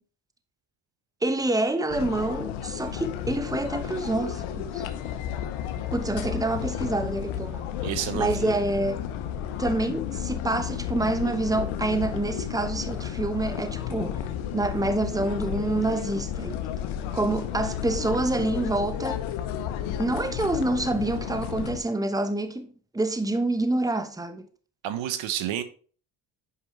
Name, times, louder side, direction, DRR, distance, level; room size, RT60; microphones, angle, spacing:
voice 1, 1.2-4.8 5.9-7.6 8.1-9.1 9.6-14.3 14.5-16.6 17.1-19.2 20.0-24.5, right 2 dB, 10° right, 1.1 m, -27 dB
sound 1, 1.9-21.8, left 10 dB, 85° left, 0.9 m, -32 dB
voice 2, 7.8-8.6 24.8-25.6, right 11 dB, 75° right, 1.0 m, -30 dB
8.5 x 5.3 x 3.2 m
supercardioid pair, 70°, 46 cm